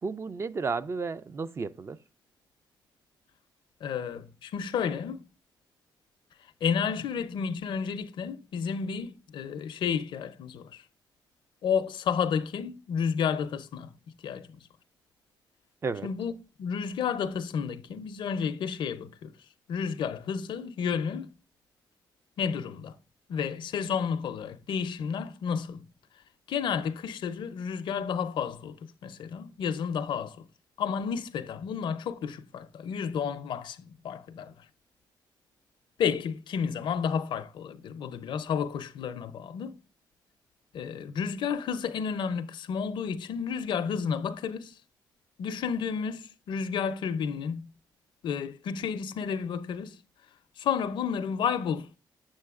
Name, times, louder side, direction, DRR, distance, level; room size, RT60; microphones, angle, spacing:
voice 1, 0.0-2.0 15.8-16.1, right 4 dB, 30° right, 0.4 m, -32 dB
voice 2, 3.8-5.2 6.6-10.8 11.6-13.9 14.2-14.6 16.0-16.3 16.6-19.3 19.7-21.3 22.4-23.0 23.3-25.9 26.5-30.4 30.8-34.5 36.0-39.8 40.7-44.8 45.4-47.7 48.2-50.0 50.6-51.9, left 7 dB, 70° left, 0.5 m, -31 dB
7.6 x 6.3 x 2.3 m
cardioid pair, 85°, 9 cm